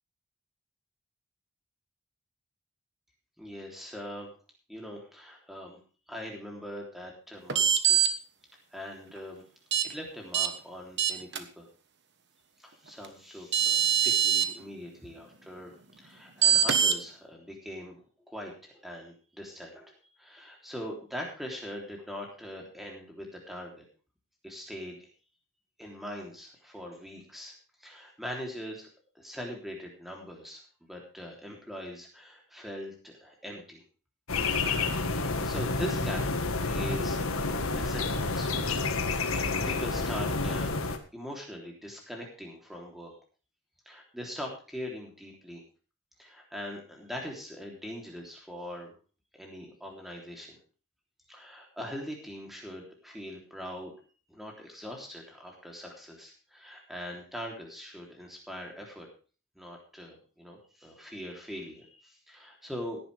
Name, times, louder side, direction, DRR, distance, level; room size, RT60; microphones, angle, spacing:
voice 1, 3.4-4.3 4.7-5.8 6.1-8.1 8.7-9.4 9.8-11.7 12.6-15.7 16.0-18.0 18.3-19.9 20.2-23.8 24.4-25.1 25.8-28.9 29.1-33.8 34.6-35.0 35.4-36.2 36.6-40.8 41.1-43.1 43.8-45.6 46.2-48.9 49.3-50.6 51.3-53.9 54.3-59.1 59.5-63.0, equal, ahead, 0 dB, 3.3 m, -42 dB
sound 1, 7.5-8.1 9.7-9.8 10.3-10.5 11.0-11.4 13.0-13.1 13.5-14.5 16.4-17.0, right 8 dB, 50° right, 1.3 m, -23 dB
sound 2, 34.3-41.0, left 3 dB, 75° left, 1.6 m, -29 dB
17.0 x 10.5 x 3.5 m, 0.37 s
head